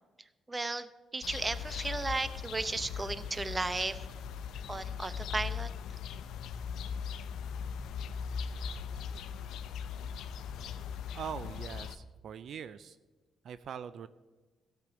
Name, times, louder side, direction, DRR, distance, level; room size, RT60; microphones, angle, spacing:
voice 1, 0.5-4.0 4.7-5.7, right 3 dB, 20° right, 13 dB, 0.7 m, -35 dB
sound 1, 1.2-12.0, left 7 dB, 80° left, 0.6 m, -39 dB
voice 2, 11.1-13.0 13.4-14.1, right 8 dB, 65° right, 14 dB, 0.4 m, -42 dB
15.5 x 6.8 x 6.2 m, 1.2 s
cardioid pair, 90°, 0 cm